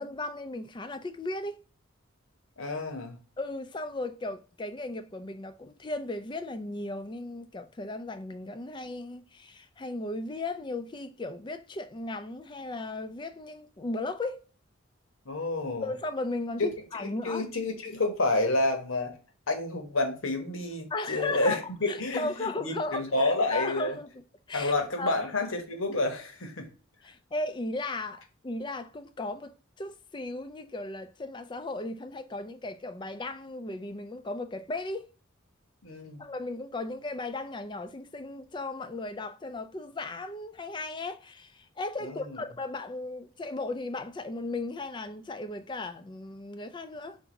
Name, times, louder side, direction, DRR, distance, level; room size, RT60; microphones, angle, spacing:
voice 1, 0.0-1.6 3.4-14.4 15.8-17.5 20.9-24.2 24.5-24.7 25.0-25.2 27.0-35.1 36.2-47.2, left 2 dB, 25° left, 0.4 m, -36 dB
voice 2, 2.6-3.2 15.2-15.9 17.0-19.1 19.5-24.0 24.5-26.7 35.8-36.2 42.0-42.4, left 2 dB, 80° left, 1.2 m, -29 dB
4.6 x 2.7 x 3.9 m
head